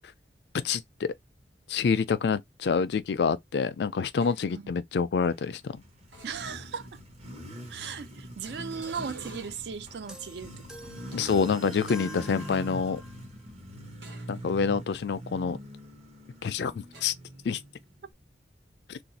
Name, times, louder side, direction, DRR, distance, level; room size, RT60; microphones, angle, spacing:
voice 1, 0.6-1.1 1.7-5.7 11.1-13.0 14.3-15.6 16.4-17.1 17.5-17.6 18.9-19.0, left 5 dB, 70° left, 0.4 m, -27 dB
sound 1, 4.2-4.6 6.1-6.9 8.4-9.8 11.0-12.8 14.0-14.5 14.9-15.1 16.9-17.0, right 3 dB, 85° right, 1.3 m, -50 dB
Motorcycle, 5.4-18.1, equal, 35° right, 0.8 m, -43 dB
voice 2, 6.2-7.0 7.7-10.9, right 6 dB, 65° right, 0.4 m, -37 dB
sound 2, 10.1-13.3, left 1 dB, 5° right, 0.4 m, -46 dB
2.5 x 2.3 x 4.0 m
head